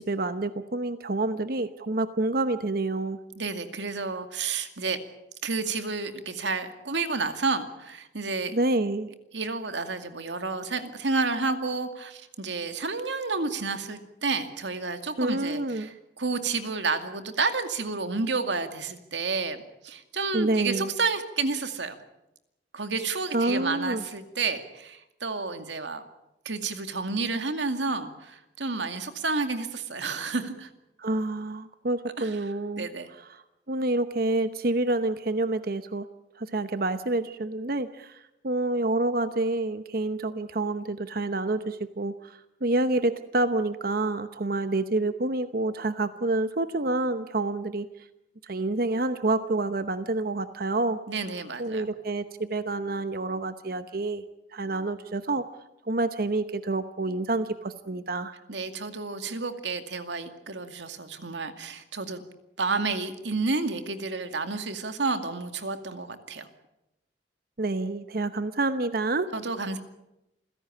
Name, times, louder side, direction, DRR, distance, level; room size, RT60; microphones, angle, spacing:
voice 1, 0.0-3.2 8.5-9.1 15.2-15.9 20.3-20.9 23.3-24.0 31.0-32.9 33.2-36.0 36.4-47.9 48.4-51.0 51.6-54.2 54.5-55.4 55.8-58.4 67.6-69.3, right 2 dB, 55° right, 11 dB, 0.9 m, -28 dB
voice 2, 3.4-5.0 5.4-8.5 9.3-22.0 22.7-26.0 26.4-30.7 32.2-32.3 32.8-33.1 51.1-51.9 58.5-62.2 62.6-66.5 69.3-69.8, right 4 dB, 90° right, 8 dB, 2.3 m, -30 dB
28.0 x 16.5 x 8.6 m, 0.89 s
head